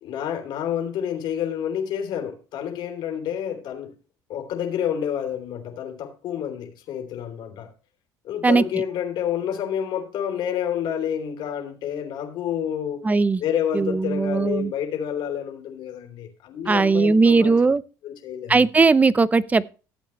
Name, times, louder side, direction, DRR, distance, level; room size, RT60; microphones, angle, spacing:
voice 1, 0.0-3.9 4.3-7.7 8.2-13.0 13.4-17.5 18.0-18.6, left 9 dB, 65° left, 3.1 m, -29 dB
voice 2, 13.0-13.4 13.7-14.7 16.7-17.8 18.5-19.7, right 4 dB, 20° right, 0.7 m, -18 dB
15.0 x 8.3 x 3.1 m
cardioid pair, 100°, 8 cm